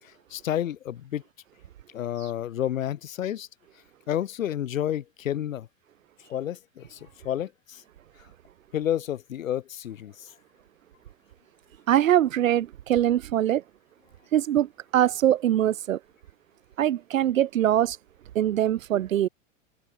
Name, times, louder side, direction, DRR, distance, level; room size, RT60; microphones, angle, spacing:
voice 1, 0.0-1.2 1.9-3.5 4.1-5.7 6.3-7.8 8.7-10.3, left 11 dB, 80° left, 4.6 m, -30 dB
voice 2, 11.9-13.6 14.3-16.0 16.8-18.0 18.3-19.3, right 11 dB, 80° right, 3.4 m, -23 dB
hypercardioid pair, 110°, 39 cm